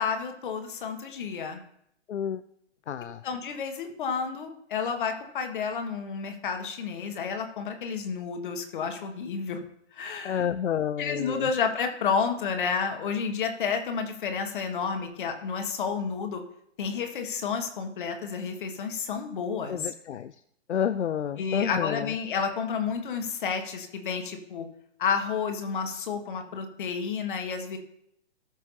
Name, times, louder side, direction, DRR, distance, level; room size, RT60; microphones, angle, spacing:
voice 1, 0.0-1.6 3.2-9.6 9.9-10.4 11.0-16.4 16.8-19.9 21.4-24.7 25.0-27.8, left 6 dB, 45° left, 5 dB, 1.7 m, -30 dB
voice 2, 2.1-2.4 2.9-3.2 10.2-11.5 19.7-20.3 20.7-22.1, left 8 dB, 70° left, 13 dB, 0.5 m, -29 dB
18.5 x 6.2 x 2.8 m, 0.73 s
figure-of-eight pair, 125°, 36 cm